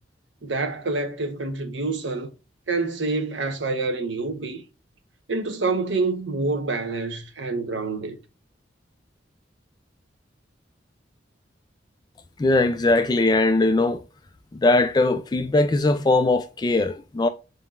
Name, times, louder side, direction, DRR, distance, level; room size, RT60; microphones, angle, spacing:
voice 1, 0.4-2.3 2.7-4.6 5.3-8.2, right 3 dB, 80° right, 0.9 m, -27 dB
voice 2, 12.4-14.0 14.5-17.3, left 2 dB, 20° left, 0.3 m, -20 dB
4.2 x 3.8 x 2.4 m
head